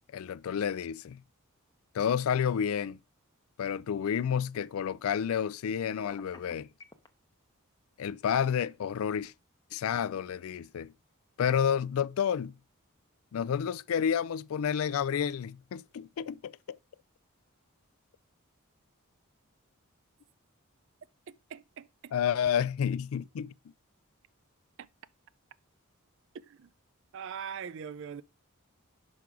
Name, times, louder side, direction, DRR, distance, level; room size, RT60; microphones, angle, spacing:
voice 1, 0.1-1.2 1.9-3.0 3.6-6.7 8.0-9.3 9.7-10.9 11.4-12.6 13.3-16.8 22.1-23.5, left 8 dB, 70° left, 0.3 m, -30 dB
Telephone, 6.0-7.1, left 2 dB, 20° left, 0.7 m, -50 dB
voice 2, 21.3-22.1 24.8-24.9 26.3-26.7 27.1-28.2, right 7 dB, 60° right, 0.4 m, -42 dB
6.0 x 5.3 x 4.8 m
head